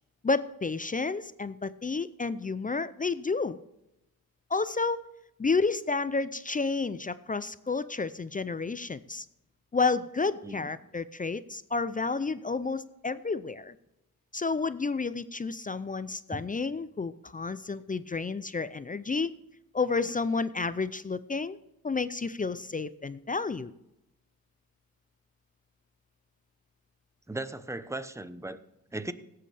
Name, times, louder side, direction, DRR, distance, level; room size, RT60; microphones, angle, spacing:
voice 1, 0.2-3.6 4.5-5.1 5.4-9.3 9.7-13.7 14.3-19.3 19.7-21.6 21.8-23.7, left 4 dB, 25° left, 15 dB, 0.4 m, -30 dB
voice 2, 27.3-28.6 28.9-29.1, right 2 dB, 10° right, 13 dB, 0.8 m, -37 dB
16.5 x 7.7 x 3.4 m, 0.89 s
cardioid pair, 65°, 37 cm